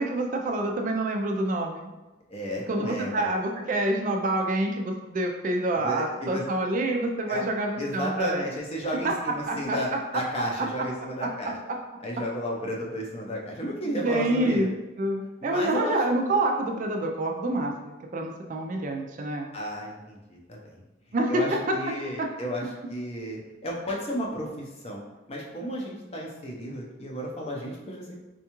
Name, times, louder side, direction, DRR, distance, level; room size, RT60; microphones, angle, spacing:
voice 1, 0.0-1.9 2.7-8.4 9.5-9.8 10.5-10.7 13.9-14.7 15.0-19.5 21.1-21.4 22.2-22.3, right 2 dB, 40° right, 2 dB, 0.3 m, -27 dB
voice 2, 2.3-3.3 5.7-6.4 7.3-7.4 7.8-11.6 12.0-14.7 15.4-16.0 19.5-20.8 21.3-25.0 25.3-28.0, equal, 30° left, -1 dB, 0.5 m, -33 dB
4.3 x 2.3 x 2.9 m, 1.1 s
head